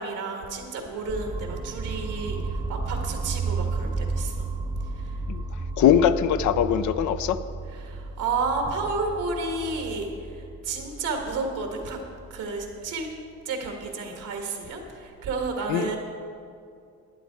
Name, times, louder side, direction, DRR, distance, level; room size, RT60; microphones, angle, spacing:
voice 1, 0.0-4.5 5.0-5.1 7.7-12.0 12.3-13.1 13.4-16.0, right 3 dB, 90° right, 2 dB, 1.9 m, -31 dB
sound 1, 1.1-13.0, right 3 dB, 20° right, 0.8 m, -33 dB
voice 2, 5.8-7.4 15.7-15.9, left 9 dB, 75° left, 12 dB, 0.5 m, -21 dB
11.5 x 9.2 x 4.7 m, 2.5 s
cardioid pair, 90°, 30 cm